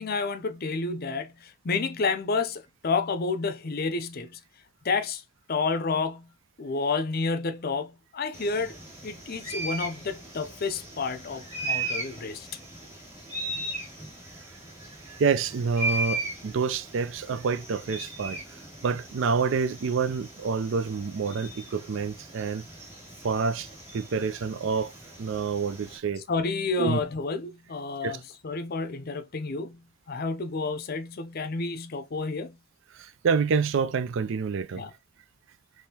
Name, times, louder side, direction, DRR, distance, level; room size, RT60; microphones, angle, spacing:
voice 1, 0.0-4.4 4.8-5.2 5.5-6.3 6.6-8.8 9.0-12.5 26.3-32.6 34.8-34.9, left 4 dB, 45° left, 0.5 m, -30 dB
sound 1, 8.3-26.0, right 2 dB, 10° right, 1.7 m, -38 dB
voice 2, 15.2-18.4 18.8-22.7 23.2-23.7 23.9-24.9 25.2-26.2 26.8-27.0 28.0-28.1 32.9-34.8, right 5 dB, 60° right, 0.4 m, -27 dB
3.6 x 3.1 x 2.8 m
head